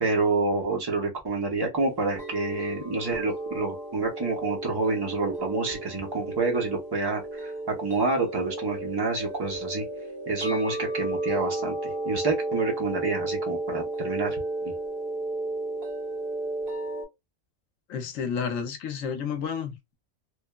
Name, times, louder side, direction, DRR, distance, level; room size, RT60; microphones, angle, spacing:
voice 1, 0.0-9.8 10.3-14.4, right 3 dB, 25° right, 0.6 m, -28 dB
sound 1, 1.8-17.0, right 2 dB, 50° right, 1.4 m, -33 dB
voice 2, 17.9-19.9, left 6 dB, 75° left, 1.0 m, -31 dB
3.1 x 2.1 x 2.2 m
omnidirectional pair, 1.4 m